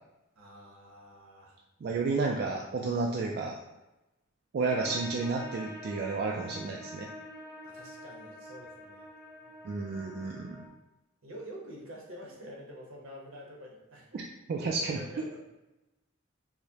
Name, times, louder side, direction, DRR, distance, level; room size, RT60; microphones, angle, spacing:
voice 1, 0.4-1.6 7.6-9.1 9.4-9.5 11.2-14.3 14.6-15.5, equal, 80° right, -2 dB, 1.0 m, -47 dB
voice 2, 1.8-3.6 4.5-7.1 9.6-10.6 14.1-14.2 14.5-15.0, right 4 dB, 50° right, 0 dB, 0.3 m, -31 dB
sound 1, 4.6-10.7, left 1 dB, 5° left, 0.8 m, -46 dB
4.7 x 2.1 x 2.8 m, 0.99 s
head